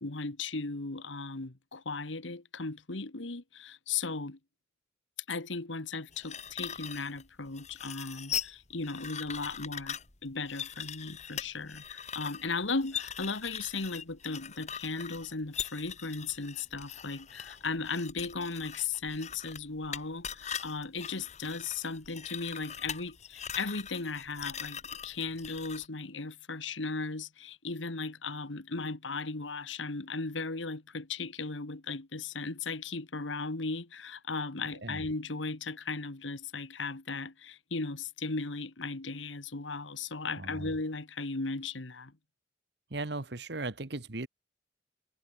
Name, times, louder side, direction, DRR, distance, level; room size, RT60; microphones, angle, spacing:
voice 1, 0.0-4.4 5.3-42.1, left 4 dB, 85° left, 1.7 m, -36 dB
sound 1, 6.1-25.9, left 8 dB, 35° left, 1.9 m, -41 dB
voice 2, 40.4-40.7 42.9-44.3, right 2 dB, 60° right, 1.4 m, -37 dB
head